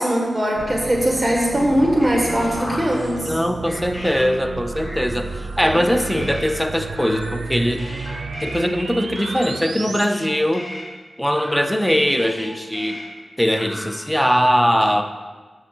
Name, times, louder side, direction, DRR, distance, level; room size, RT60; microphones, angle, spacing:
voice 1, 0.0-3.3 5.6-5.8, equal, 20° right, -1 dB, 1.4 m, -20 dB
sound 1, 0.6-10.1, right 3 dB, 80° right, 0.5 m, -32 dB
sound 2, 1.0-3.4 3.7-4.2 4.8-5.6 5.9-6.4 7.0-8.6 9.2-10.3 10.5-10.8 11.4-12.5 12.7-13.0 13.6-14.2, left 1 dB, 30° left, 2.2 m, -36 dB
voice 2, 3.3-5.3 5.6-7.8 8.4-10.7 11.2-13.0 13.4-15.0, equal, 5° left, 7 dB, 0.7 m, -21 dB
7.6 x 6.0 x 4.5 m, 1.4 s
wide cardioid pair, 70°, 0 cm